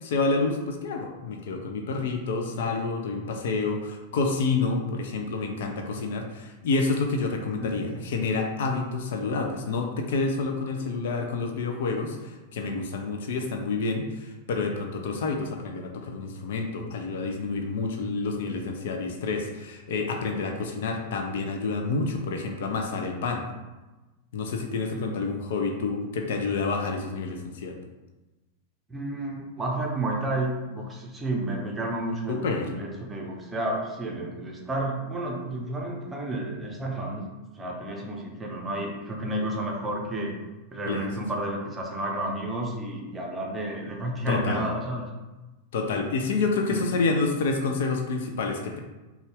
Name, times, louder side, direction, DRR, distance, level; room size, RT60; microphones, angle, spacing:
voice 1, 0.0-23.4 24.3-27.8 32.3-32.7 40.9-41.1 44.3-44.6 45.7-48.8, left 3 dB, 55° left, 3 dB, 0.4 m, -28 dB
voice 2, 7.6-7.9 24.9-25.1 28.9-37.2 37.5-40.4 40.7-45.1 46.7-46.9, right 1 dB, 15° right, -1 dB, 0.8 m, -31 dB
4.0 x 2.3 x 3.5 m, 1.1 s
figure-of-eight pair, 90°, 0 cm